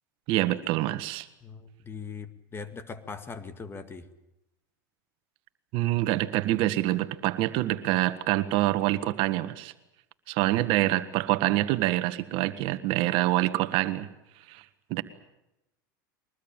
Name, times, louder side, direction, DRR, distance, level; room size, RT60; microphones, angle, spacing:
voice 1, 0.3-1.3 5.7-9.7 10.3-14.1 14.5-14.6 14.9-15.0, right 16 dB, 55° right, 11 dB, 1.5 m, -26 dB
voice 2, 1.4-4.1, left 5 dB, 20° left, 10 dB, 2.1 m, -40 dB
23.0 x 19.5 x 9.0 m, 0.88 s
supercardioid pair, 110°, 11 cm